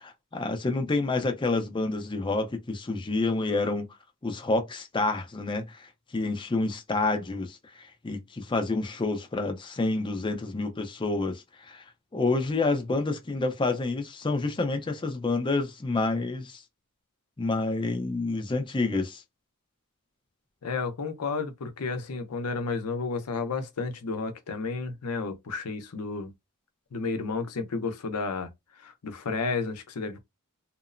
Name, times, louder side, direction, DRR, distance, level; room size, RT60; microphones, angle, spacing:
voice 1, 0.0-3.9 4.2-11.8 12.1-16.6 17.4-19.2, left 3 dB, 20° left, 0.5 m, -28 dB
voice 2, 20.6-26.3 26.9-28.5 28.8-30.2, left 4 dB, 85° left, 0.6 m, -32 dB
2.8 x 2.0 x 2.5 m
head